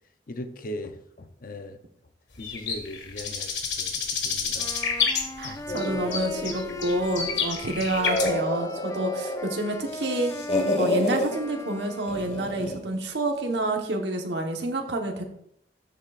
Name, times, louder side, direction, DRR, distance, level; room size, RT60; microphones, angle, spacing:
voice 1, 0.3-1.8 2.4-4.7 5.1-5.8, left 1 dB, 55° left, 8 dB, 0.7 m, -39 dB
sound 1, 2.3-5.9 6.1-8.3, left 5 dB, 85° left, 1.7 m, -29 dB
Wind instrument woodwind instrument, 4.6-12.7, left 2 dB, 20° left, 0.5 m, -39 dB
voice 2, 5.4-10.3 10.8-15.2, right 1 dB, 75° right, 2 dB, 1.2 m, -28 dB
sound 2, 5.7-7.4 7.9-9.5 9.9-11.3 12.1-12.9, left 1 dB, 40° left, 1.4 m, -29 dB
13.0 x 7.3 x 2.5 m, 0.72 s
head